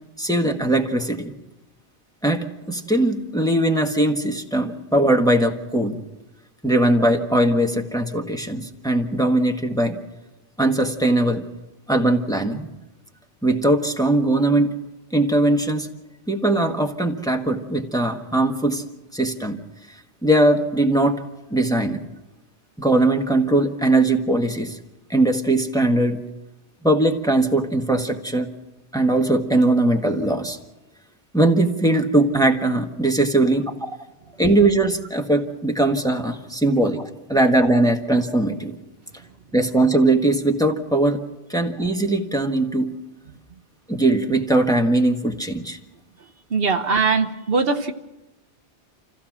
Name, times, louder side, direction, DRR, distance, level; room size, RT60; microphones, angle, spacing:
voice 1, 0.2-1.3 2.2-6.0 6.6-10.0 10.6-11.4 11.9-12.7 13.4-14.7 15.1-15.9 16.3-18.8 19.1-19.6 20.2-21.2 21.5-22.0 22.8-24.8 25.1-26.2 26.8-28.5 28.9-30.6 31.3-33.7 34.4-38.8 39.5-41.2 41.5-42.9 43.9-45.8, right 1 dB, 5° left, 3 dB, 1.5 m, -20 dB
voice 2, 46.5-47.9, right 4 dB, 65° right, 7 dB, 1.2 m, -21 dB
27.5 x 16.0 x 6.1 m, 1.0 s
omnidirectional pair, 1.1 m